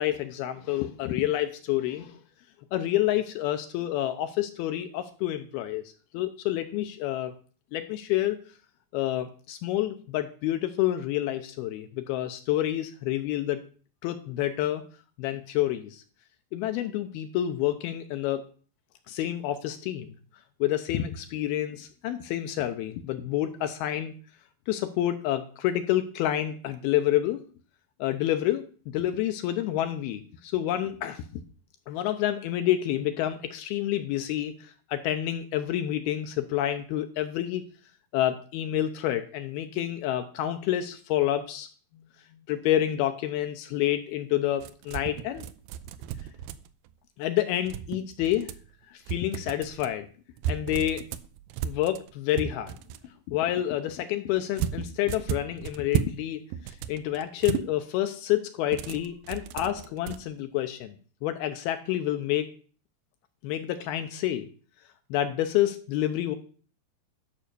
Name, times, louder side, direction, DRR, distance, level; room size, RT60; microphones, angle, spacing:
voice 1, 0.0-2.2 2.7-5.8 6.1-7.3 7.7-8.4 8.9-13.6 14.0-14.8 15.2-16.0 16.5-18.5 19.1-20.1 20.6-24.1 24.7-27.4 28.0-28.6 28.9-31.4 31.9-37.6 38.1-41.7 42.5-45.4 47.2-48.5 48.9-50.1 50.5-51.1 51.6-52.8 53.3-61.0 61.2-62.5 63.4-64.5 65.1-66.4, left 13 dB, 80° left, 8 dB, 2.4 m, -28 dB
sound 1, 44.6-46.9 47.6-48.7 49.1-49.9 50.4-53.1 54.6-56.2 56.5-57.7 58.7-60.2, right 10 dB, 85° right, 2.1 m, -34 dB
11.5 x 5.6 x 6.7 m, 0.41 s
omnidirectional pair, 4.9 m